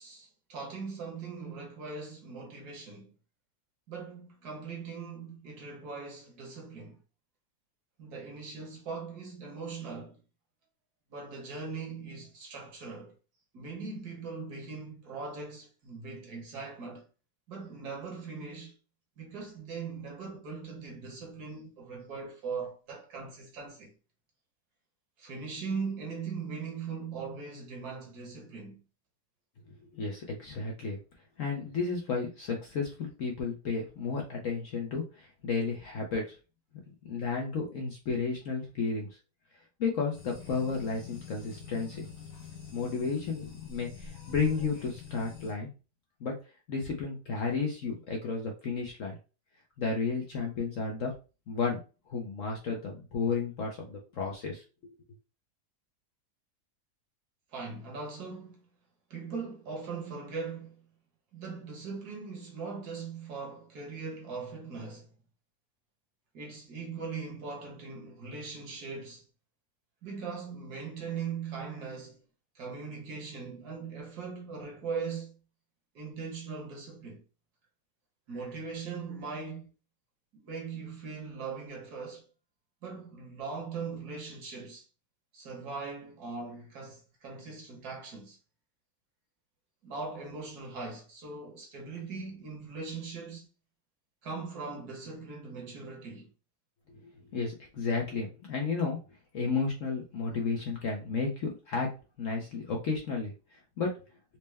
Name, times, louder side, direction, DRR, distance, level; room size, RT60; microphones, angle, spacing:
voice 1, 0.0-3.1 3.9-7.0 8.0-10.2 11.1-13.1 13.5-17.0 17.5-18.8 19.2-23.9 25.2-28.8 57.5-58.7 59.1-60.8 61.3-65.1 66.3-69.3 70.0-72.2 72.5-75.4 75.9-77.2 78.3-79.7 80.4-82.3 82.8-84.8 85.3-88.4 89.8-93.5 94.2-96.3, right 5 dB, 65° right, 1.6 m, -40 dB
voice 2, 29.9-31.0 31.4-36.4 37.0-39.1 39.8-42.0 42.7-45.7 46.2-46.4 46.7-49.2 49.8-51.1 51.5-51.8 52.1-54.9 97.0-99.0 99.3-101.9 102.2-103.3 103.8-103.9, left 4 dB, 60° left, 0.9 m, -32 dB
sound 1, 40.1-45.5, left 6 dB, 40° left, 1.3 m, -46 dB
4.2 x 2.1 x 3.3 m
omnidirectional pair, 1.9 m